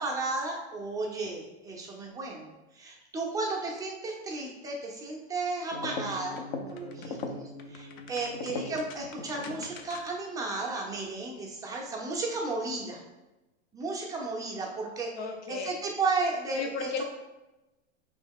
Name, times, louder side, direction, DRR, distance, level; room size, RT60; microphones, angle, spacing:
voice 1, 0.0-2.5 2.8-7.4 7.7-13.0 13.7-15.1 15.5-17.0, right 3 dB, 10° right, -2 dB, 0.5 m, -33 dB
sound 1, 5.7-10.3, left 3 dB, 50° left, 0.5 m, -39 dB
voice 2, 15.2-15.8 16.5-17.0, left 4 dB, 75° left, 3 dB, 0.8 m, -35 dB
4.4 x 3.1 x 3.5 m, 1.0 s
supercardioid pair, 145°, 34 cm